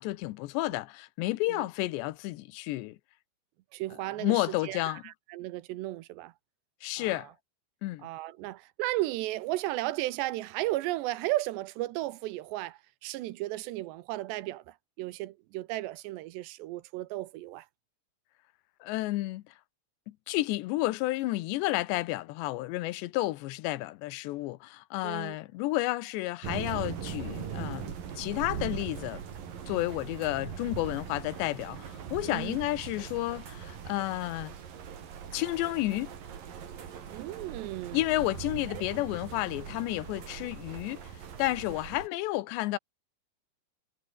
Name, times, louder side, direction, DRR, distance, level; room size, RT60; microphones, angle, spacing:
voice 1, 0.0-3.0 4.2-5.0 6.8-7.3 7.8-8.1 18.8-19.5 20.1-29.2 29.7-34.5 35.3-36.1 37.9-41.0 41.4-42.8, left 18 dB, 85° left, 3.1 m, -31 dB
voice 2, 3.7-6.3 7.0-7.3 8.0-17.7 25.0-25.4 32.3-32.6 37.1-38.0 38.7-38.8, right 17 dB, 85° right, 3.1 m, -35 dB
sound 1, 26.4-42.1, right 8 dB, 55° right, 4.4 m, -41 dB
omnidirectional pair, 5.0 m